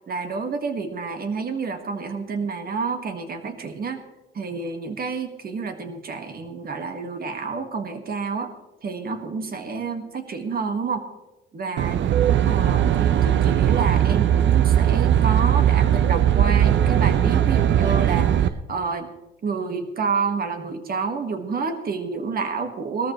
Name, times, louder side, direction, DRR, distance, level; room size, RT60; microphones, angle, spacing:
voice 1, 0.1-4.0 4.3-8.5 8.8-11.0 11.5-12.0 12.5-19.1 19.4-23.1, right 5 dB, 50° right, 6 dB, 1.8 m, -29 dB
Aircraft, 11.8-18.5, right 10 dB, 70° right, 0.7 m, -19 dB
19.0 x 13.5 x 3.2 m, 1.1 s
cardioid pair, 90°, 20 cm